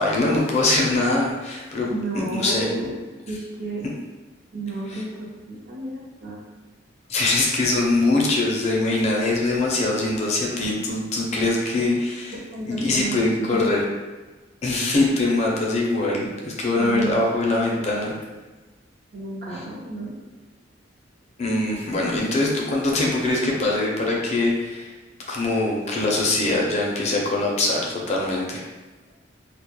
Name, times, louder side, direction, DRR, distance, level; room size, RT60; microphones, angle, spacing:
voice 1, 0.0-1.9 2.4-2.6 4.9-5.0 7.1-12.3 12.7-13.8 14.6-18.1 21.4-24.9 25.3-28.7, left 2 dB, 35° left, -2 dB, 0.4 m, -22 dB
voice 2, 1.9-2.9 3.3-3.8 4.5-6.4 12.5-13.7 16.8-17.2 17.8-17.9 18.2-18.3 19.1-20.2, right 2 dB, 55° right, -5 dB, 0.6 m, -32 dB
2.1 x 2.1 x 2.9 m, 1.2 s
head